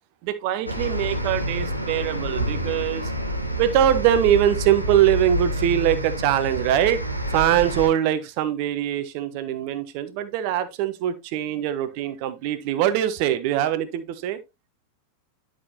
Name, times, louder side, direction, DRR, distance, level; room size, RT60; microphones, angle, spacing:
voice 1, 0.2-3.1 3.6-7.0 7.3-14.4, right 11 dB, 45° right, 1.2 m, -22 dB
sound 1, 0.7-7.9, equal, 90° right, 1.4 m, -28 dB
11.0 x 6.3 x 2.9 m
figure-of-eight pair, 90°, 0 cm